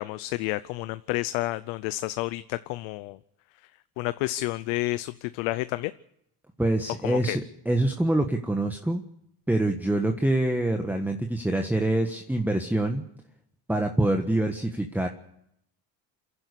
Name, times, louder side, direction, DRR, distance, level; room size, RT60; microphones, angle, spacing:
voice 1, 0.0-3.2 4.0-5.9 7.0-7.4, left 19 dB, 85° left, 14 dB, 0.8 m, -30 dB
voice 2, 6.6-9.0 9.5-13.0 13.7-15.1, right 1 dB, 5° right, 5 dB, 1.4 m, -25 dB
28.0 x 11.5 x 8.3 m, 0.75 s
supercardioid pair, 100°, 44 cm